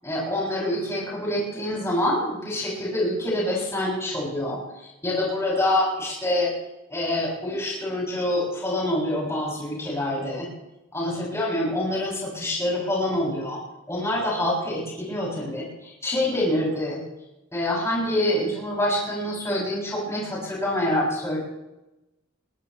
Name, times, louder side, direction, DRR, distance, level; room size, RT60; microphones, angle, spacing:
voice 1, 0.0-6.5 6.9-10.5 10.9-13.6 13.9-17.0 17.5-21.4, left 1 dB, 15° left, -5 dB, 7.3 m, -26 dB
22.5 x 18.5 x 3.3 m, 0.94 s
head